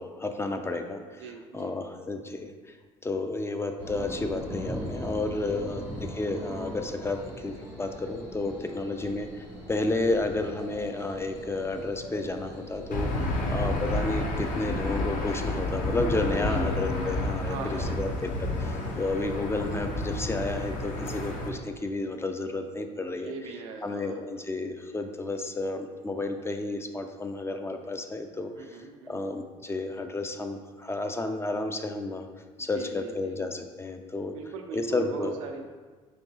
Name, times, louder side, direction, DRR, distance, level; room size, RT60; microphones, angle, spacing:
voice 1, 0.0-1.3 1.5-2.8 3.0-23.5 23.8-28.8 29.1-32.3 32.6-34.3 34.7-35.4, left 2 dB, 15° left, 6 dB, 0.4 m, -32 dB
voice 2, 1.2-1.8 5.4-5.8 9.0-9.2 13.1-13.5 16.4-16.9 17.4-18.1 23.2-24.2 28.6-29.2 32.6-33.4 34.3-35.6, right 4 dB, 80° right, 3 dB, 0.5 m, -40 dB
sound 1, 3.8-18.9, equal, 90° left, 1.5 m, -41 dB
Aircraft / Engine, 12.9-21.5, left 2 dB, 50° left, 0.7 m, -30 dB
4.5 x 2.9 x 2.7 m, 1.4 s
hypercardioid pair, 60°, 17 cm